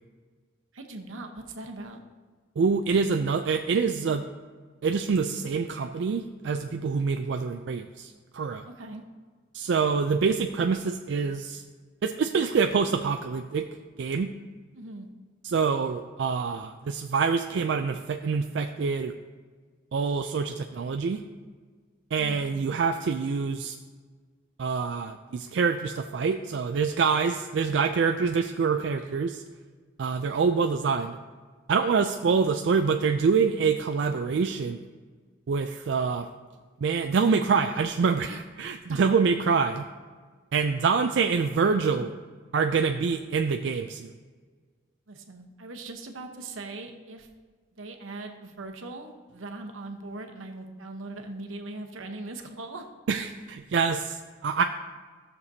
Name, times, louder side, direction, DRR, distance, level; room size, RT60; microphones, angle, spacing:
voice 1, 0.7-2.0 8.6-9.0 14.7-15.1 29.0-29.1 38.9-39.1 45.1-47.3 47.7-52.9, right 2 dB, 85° right, 4 dB, 1.0 m, -40 dB
voice 2, 2.6-4.2 4.8-8.6 9.5-11.6 12.0-13.7 14.0-14.3 15.4-19.1 19.9-21.2 22.1-23.7 24.6-29.4 30.0-31.2 31.7-34.8 35.5-36.3 36.8-39.9 40.5-42.1 42.5-44.1 53.1-54.6, right 5 dB, 60° right, 6 dB, 0.3 m, -26 dB
15.5 x 6.7 x 2.8 m, 1.5 s
head